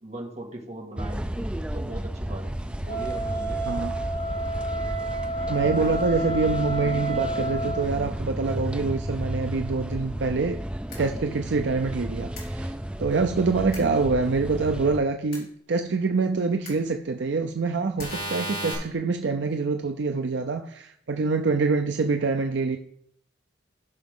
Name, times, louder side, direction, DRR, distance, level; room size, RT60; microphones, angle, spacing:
voice 1, 0.0-3.6, right 1 dB, 35° right, 1.8 m, -39 dB
sound 1, 1.0-15.0, right 1 dB, 5° right, 0.3 m, -32 dB
Wind instrument woodwind instrument, 2.8-7.9, right 1 dB, 35° left, 3.6 m, -30 dB
voice 2, 3.6-4.0 5.5-10.6 11.0-22.8, right 4 dB, 60° right, 0.5 m, -25 dB
sound 2, 10.9-11.0 12.4-12.5 13.7-13.8 15.3-15.4 16.7-16.8 18.0-18.7, equal, 50° left, 3.9 m, -33 dB
14.5 x 5.9 x 3.7 m
head